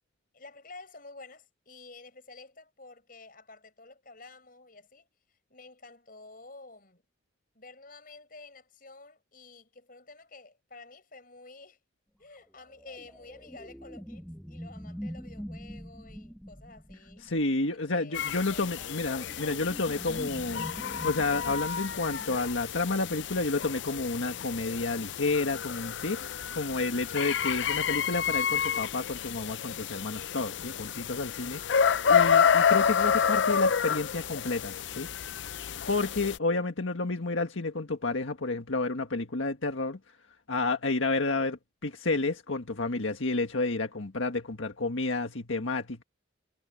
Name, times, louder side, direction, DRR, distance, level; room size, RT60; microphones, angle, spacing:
voice 1, 0.3-5.1 5.5-7.0 7.5-11.8 12.2-17.2 17.7-18.2 18.5-18.9, left 3 dB, 45° left, 6.3 m, -51 dB
sound 1, 12.5-17.7 18.6-22.4, equal, ahead, 1.5 m, -44 dB
voice 2, 17.2-20.7 21.0-35.1 35.9-40.0 40.5-46.0, left 3 dB, 90° left, 1.7 m, -30 dB
sound 2, 18.1-36.4, left 7 dB, 70° left, 0.5 m, -29 dB
head